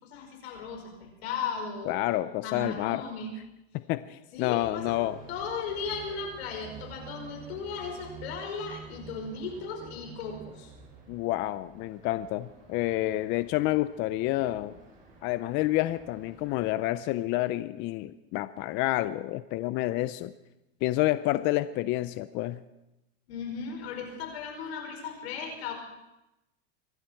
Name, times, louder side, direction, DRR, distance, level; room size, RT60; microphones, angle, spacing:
voice 1, 0.0-2.0 2.4-3.3 4.3-5.0 5.3-10.7 23.3-25.7, left 5 dB, 80° left, 2 dB, 5.5 m, -36 dB
voice 2, 1.9-3.0 3.9-5.2 11.1-14.7 15.2-20.3 20.8-22.6, left 16 dB, 35° left, 14 dB, 0.5 m, -29 dB
sound 1, 4.6-16.7, right 5 dB, 25° right, 6.5 m, -49 dB
25.0 x 12.0 x 4.6 m, 0.94 s
supercardioid pair, 145°, 31 cm